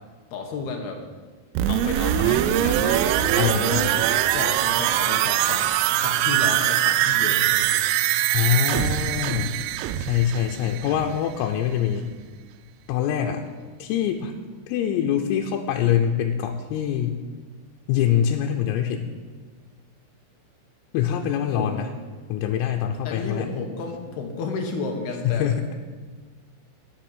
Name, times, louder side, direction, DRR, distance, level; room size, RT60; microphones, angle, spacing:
voice 1, 0.3-1.0 1.7-3.8 4.3-7.7 10.3-10.8 21.5-21.8 22.3-22.4 23.0-25.8, left 4 dB, 70° left, 2 dB, 2.6 m, -32 dB
sound 1, 1.6-11.3 11.6-11.7, right 12 dB, 85° right, 3.2 m, -22 dB
voice 2, 3.4-4.1 8.3-9.6 10.0-12.1 12.9-13.4 13.8-14.3 14.7-17.2 17.9-19.1 20.9-21.9 22.3-23.5 25.3-25.6, left 9 dB, 90° left, 2 dB, 3.5 m, -24 dB
12.0 x 6.9 x 9.7 m, 1.4 s
omnidirectional pair, 5.9 m